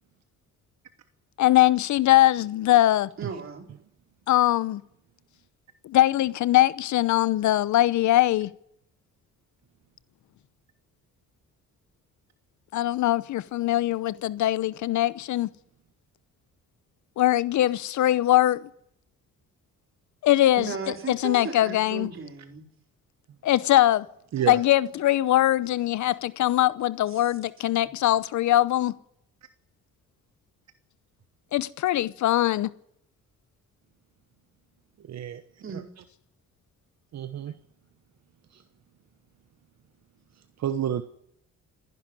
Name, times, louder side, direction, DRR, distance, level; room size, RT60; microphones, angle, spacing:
voice 1, 1.4-3.1 4.3-4.8 5.8-8.5 12.7-15.5 17.2-18.7 20.2-20.7 21.1-22.1 23.4-24.1 24.5-28.9 31.5-32.7, left 14 dB, 70° left, 0.8 m, -22 dB
voice 2, 3.2-3.7 20.6-22.7 27.1-27.3 27.8-27.9 35.6-35.9, right 5 dB, 45° right, 4.4 m, -36 dB
voice 3, 35.1-35.4 37.1-37.5 40.6-41.0, right 10 dB, 60° right, 1.1 m, -28 dB
25.5 x 11.0 x 9.9 m
cardioid pair, 90°, 30 cm